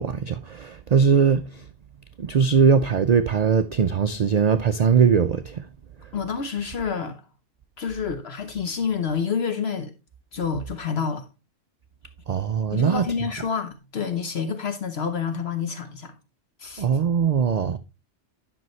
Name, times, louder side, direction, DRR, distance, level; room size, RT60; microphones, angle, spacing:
voice 1, 0.0-1.4 2.2-5.7 12.3-13.0 16.8-17.8, right 6 dB, 60° right, 0.4 m, -20 dB
voice 2, 6.1-7.2 7.8-9.9 10.3-11.3 12.7-16.1 16.6-16.9, left 6 dB, 60° left, 1.1 m, -28 dB
10.5 x 6.1 x 3.1 m
omnidirectional pair, 1.3 m